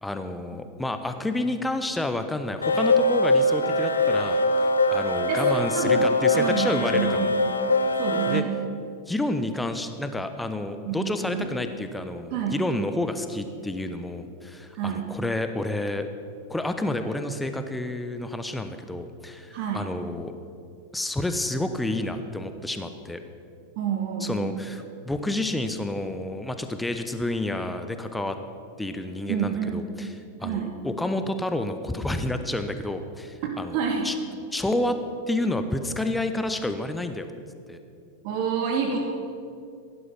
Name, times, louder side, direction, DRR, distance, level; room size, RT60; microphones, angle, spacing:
voice 1, 0.0-7.3 8.3-8.4 9.1-16.0 16.5-20.3 20.9-23.2 24.2-28.4 28.8-30.1 30.4-33.8 34.0-34.1 34.5-35.0 35.3-37.3 37.7-37.8, left 1 dB, 5° left, 8 dB, 0.9 m, -29 dB
sound 1, 2.6-8.4, left 2 dB, 75° left, 0.8 m, -22 dB
voice 2, 5.3-7.4 8.0-8.5 10.8-11.5 12.3-12.6 14.7-15.1 19.5-19.9 23.8-24.5 29.3-29.8 30.4-30.7 33.7-34.1 38.2-39.0, right 7 dB, 45° right, 2 dB, 1.4 m, -28 dB
16.5 x 11.0 x 5.7 m, 2.5 s
figure-of-eight pair, 90°, 0 cm